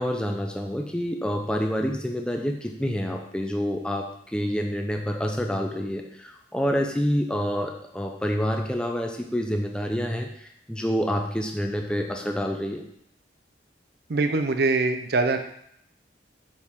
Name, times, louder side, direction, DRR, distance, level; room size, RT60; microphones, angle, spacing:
voice 1, 0.0-4.1 4.3-10.3 10.7-12.8, equal, 5° left, 2 dB, 0.6 m, -27 dB
voice 2, 14.1-15.4, right 3 dB, 60° right, 8 dB, 0.6 m, -23 dB
6.8 x 4.6 x 3.6 m, 0.71 s
head